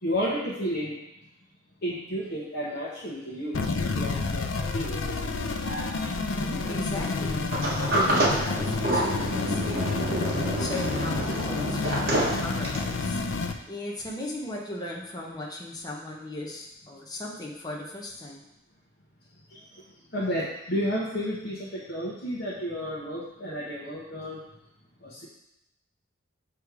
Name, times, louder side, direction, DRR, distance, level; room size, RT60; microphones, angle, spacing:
voice 1, 0.0-1.0 1.8-5.1 5.6-6.2 11.2-11.3 19.5-19.6 20.1-24.4 25.0-25.2, equal, 55° left, -8 dB, 1.2 m, -32 dB
sound 1, 3.5-13.5, left 3 dB, 90° left, 0.5 m, -29 dB
voice 2, 6.2-7.5 7.8-9.9 10.5-13.2 13.7-18.4, left 1 dB, 20° left, -3 dB, 0.9 m, -37 dB
Sliding door, 7.5-12.9, right 1 dB, 50° right, 1.2 m, -28 dB
6.8 x 3.3 x 4.8 m, 0.84 s
head